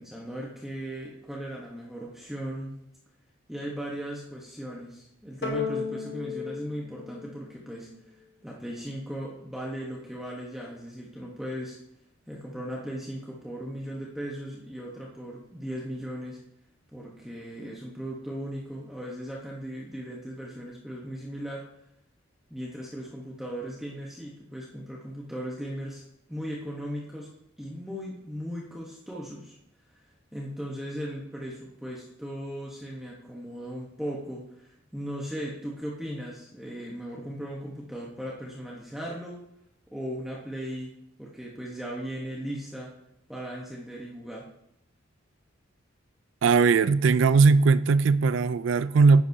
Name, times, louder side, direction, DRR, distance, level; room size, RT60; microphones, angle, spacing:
voice 1, 0.0-2.8 3.5-8.1 8.4-11.8 12.3-16.4 16.9-21.7 22.5-26.0 26.3-27.3 27.6-29.6 30.3-39.4 39.9-40.9 41.2-42.9 43.3-44.5, equal, ahead, 1.0 m, -37 dB
sound 1, 5.4-8.0, left 6 dB, 55° left, 1.2 m, -34 dB
voice 2, 46.4-49.2, right 4 dB, 65° right, 0.3 m, -19 dB
10.0 x 9.7 x 2.7 m
head